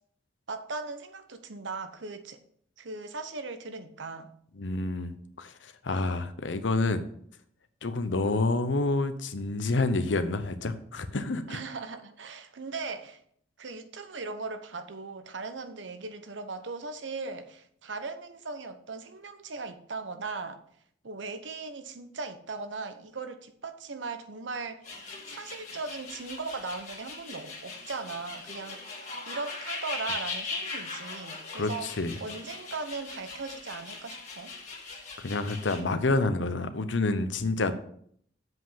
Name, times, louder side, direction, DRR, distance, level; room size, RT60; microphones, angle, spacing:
voice 1, 0.5-2.4 2.8-4.3 11.5-13.2 13.6-20.6 21.0-24.9 25.3-28.9 29.3-31.9 32.2-34.5, right 3 dB, 85° right, 0.9 m, -38 dB
voice 2, 4.6-7.0 7.8-11.6 31.5-32.1 35.2-37.7, left 2 dB, 90° left, 0.8 m, -28 dB
sound 1, 24.8-35.8, left 3 dB, 40° left, 2.2 m, -40 dB
7.7 x 5.2 x 5.7 m
head